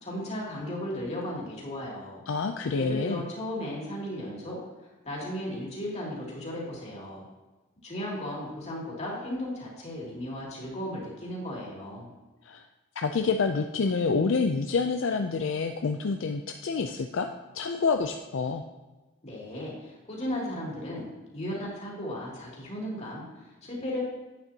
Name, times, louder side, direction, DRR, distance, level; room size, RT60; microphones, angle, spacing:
voice 1, 0.0-2.2 2.8-4.6 5.0-7.3 7.8-12.1 19.2-21.1 21.3-24.0, left 1 dB, 30° left, -4 dB, 2.6 m, -35 dB
voice 2, 2.3-3.2 12.4-12.6 13.0-17.3 17.5-18.6, left 4 dB, 60° left, 5 dB, 0.4 m, -27 dB
10.5 x 8.7 x 2.8 m, 1.2 s
head